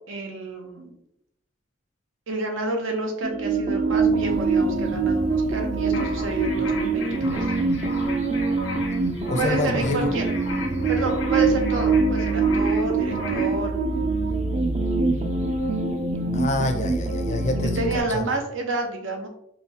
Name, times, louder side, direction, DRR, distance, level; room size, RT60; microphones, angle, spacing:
voice 1, 0.1-0.9 2.3-7.5 9.4-10.3 10.9-13.7 17.8-19.3, right 2 dB, 85° right, 3 dB, 0.8 m, -29 dB
sound 1, 3.2-18.0, right 3 dB, 35° right, 0.4 m, -24 dB
sound 2, 5.9-13.6, left 3 dB, 90° left, 0.9 m, -37 dB
voice 2, 9.3-10.1 16.3-17.8 18.1-18.4, left 2 dB, 40° left, 5 dB, 0.5 m, -27 dB
4.9 x 2.3 x 2.8 m, 0.76 s
head